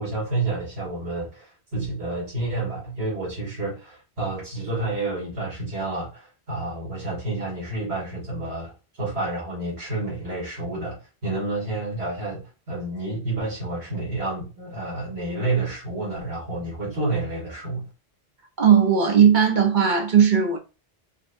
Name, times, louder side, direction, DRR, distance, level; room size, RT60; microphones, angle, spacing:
voice 1, 0.0-8.7 9.0-17.9, right 2 dB, 85° right, 2.1 m, -29 dB
voice 2, 18.6-20.6, right 7 dB, 50° right, 0.9 m, -17 dB
5.0 x 2.3 x 2.6 m
omnidirectional pair, 1.1 m